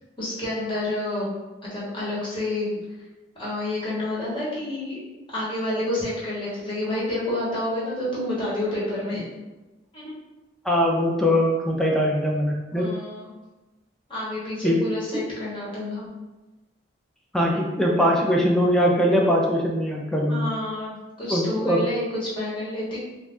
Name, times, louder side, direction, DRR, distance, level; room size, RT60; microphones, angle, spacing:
voice 1, 0.2-1.3 1.6-2.7 3.3-5.0 5.3-9.3 9.9-10.1 12.7-13.3 14.1-16.0 20.3-23.0, left 1 dB, 30° left, -7 dB, 1.1 m, -29 dB
voice 2, 10.6-12.9 14.6-14.8 17.3-20.5 21.3-21.8, equal, 5° left, -2 dB, 0.4 m, -21 dB
2.5 x 2.3 x 3.3 m, 1.1 s
head